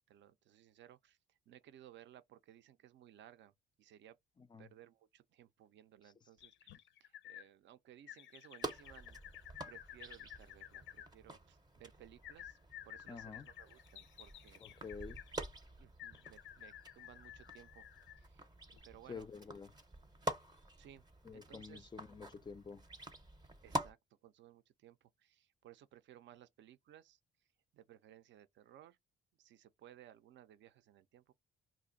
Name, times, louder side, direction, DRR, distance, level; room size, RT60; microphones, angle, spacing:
voice 1, 0.0-4.2 4.6-9.2 9.7-12.6 12.8-14.6 15.8-17.9 18.2-18.5 18.8-19.3 20.8-21.0 21.3-21.9 23.6-24.0 24.2-27.2 27.7-29.0 29.4-31.3, right 11 dB, 65° right, 0.5 m, -60 dB
sound 1, 6.4-7.5 8.1-11.1 12.2-15.3 16.0-18.3 18.7-18.8, left 12 dB, 75° left, 0.5 m, -53 dB
sound 2, 8.6-23.9, equal, 20° right, 0.6 m, -47 dB
voice 2, 13.1-13.5 14.6-15.2 19.1-19.7 21.2-22.8, left 5 dB, 20° left, 0.3 m, -49 dB
2.5 x 2.2 x 3.8 m
cardioid pair, 90°, 20 cm